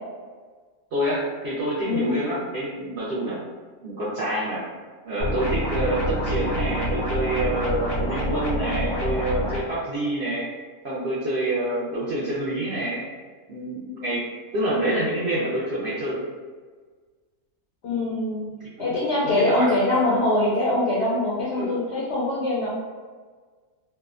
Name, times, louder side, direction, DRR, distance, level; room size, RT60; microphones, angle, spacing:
voice 1, 0.9-3.4 3.8-4.6 5.0-10.5 10.8-13.1 13.5-14.2 14.5-16.2 18.8-19.0 19.2-19.7 21.6-21.7, right 1 dB, 65° right, -8 dB, 0.6 m, -27 dB
sound 1, 5.2-9.6, equal, 85° left, 1.1 m, -27 dB
voice 2, 17.8-18.5 18.8-22.7, left 2 dB, 65° left, -6 dB, 0.6 m, -23 dB
2.7 x 2.1 x 2.3 m, 1.5 s
omnidirectional pair, 1.6 m